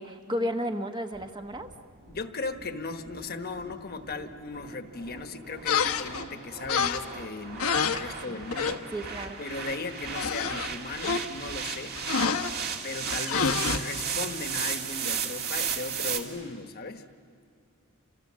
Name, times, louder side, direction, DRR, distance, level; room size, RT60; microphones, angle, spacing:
voice 1, 0.0-1.7 8.3-8.4 8.9-9.4, equal, 20° right, 6 dB, 1.0 m, -33 dB
sound 1, 1.1-16.2, right 6 dB, 50° right, 2.2 m, -36 dB
voice 2, 2.1-8.8 9.4-12.0 12.8-17.1, left 3 dB, 45° left, 7 dB, 1.2 m, -37 dB
sound 2, 5.7-6.3 6.6-7.2 7.6-8.7 9.0-9.3 9.6-9.7 10.0-11.6 12.0-12.5 13.1-13.8, left 5 dB, 85° left, 1.1 m, -28 dB
29.5 x 26.5 x 7.4 m, 2.4 s
head